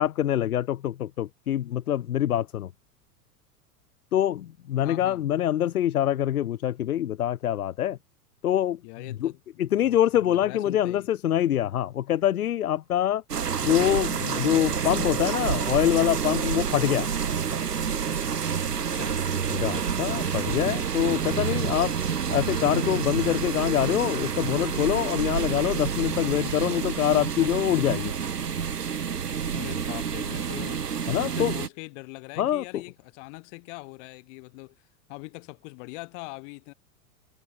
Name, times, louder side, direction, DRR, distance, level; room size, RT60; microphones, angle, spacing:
voice 1, 0.0-2.7 4.1-8.0 8.4-9.3 9.6-13.2 13.6-17.1 19.5-22.0 22.3-28.1 31.1-31.5 32.4-32.8, left 11 dB, 65° left, 2.5 m, -25 dB
voice 2, 4.8-5.2 8.8-9.4 9.7-11.1 18.7-19.2 29.5-30.9 31.2-34.8 35.1-36.7, left 29 dB, 50° left, 4.8 m, -42 dB
sound 1, 13.3-31.7, right 7 dB, 85° right, 1.1 m, -28 dB
figure-of-eight pair, 90°, 46 cm